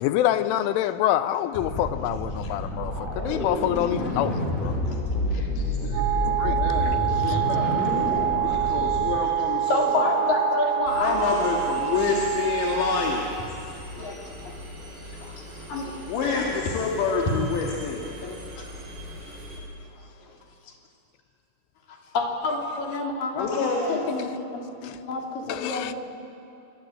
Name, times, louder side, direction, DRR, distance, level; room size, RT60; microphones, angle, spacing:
voice 1, 0.0-4.8 6.3-6.9 7.3-7.4 24.8-25.0 25.5-25.9, left 12 dB, 85° left, 3.3 m, -26 dB
sound 1, 1.5-9.2, left 1 dB, 10° left, 4.4 m, -28 dB
voice 2, 5.9-7.9 8.4-9.9 11.0-13.3 16.1-18.1 23.4-24.0, left 5 dB, 65° left, 4.0 m, -27 dB
Wind instrument woodwind instrument, 5.9-13.3, right 13 dB, 85° right, 3.8 m, -26 dB
voice 3, 7.1-7.4 8.3-8.8 9.6-12.1 13.7-14.5 15.0-17.1 17.6-17.7 18.0-18.7 19.8-20.8 21.9-25.9, left 3 dB, 50° left, 4.5 m, -31 dB
Engine, 10.9-19.6, left 1 dB, 50° right, 8.7 m, -41 dB
27.5 x 24.0 x 8.8 m
omnidirectional pair, 5.7 m